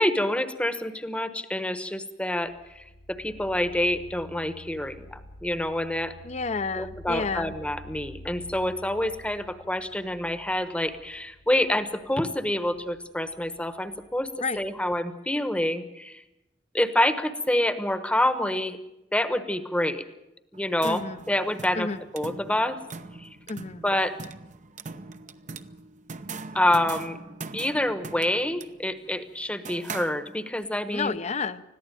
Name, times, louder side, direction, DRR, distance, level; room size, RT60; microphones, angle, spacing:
voice 1, 0.0-6.1 6.7-14.3 14.5-16.2 16.7-18.8 19.1-20.0 20.5-22.8 23.2-23.3 23.8-24.1 26.5-27.2 27.5-31.2, left 1 dB, 5° left, 11 dB, 1.1 m, -27 dB
sound 1, 2.3-15.1, left 1 dB, 60° left, 1.9 m, -49 dB
voice 2, 6.2-7.5 14.4-14.6 20.8-21.2 21.7-22.0 23.5-23.8 30.9-31.6, left 4 dB, 35° left, 14 dB, 0.7 m, -30 dB
Sonic Snap Eda, 20.5-30.7, right 4 dB, 40° right, 0.8 m, -41 dB
21.0 x 14.5 x 9.1 m, 0.92 s
head